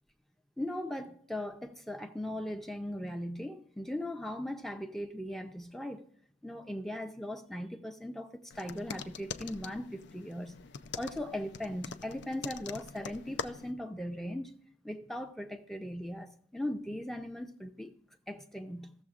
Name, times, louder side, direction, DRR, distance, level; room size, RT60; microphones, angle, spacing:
voice 1, 0.6-6.0 6.4-10.6 11.0-14.5 14.8-17.9 18.3-18.9, left 1 dB, ahead, 0.5 m, -39 dB
sound 1, 8.5-13.7, left 6 dB, 65° left, 0.4 m, -44 dB
16.0 x 6.9 x 2.4 m
head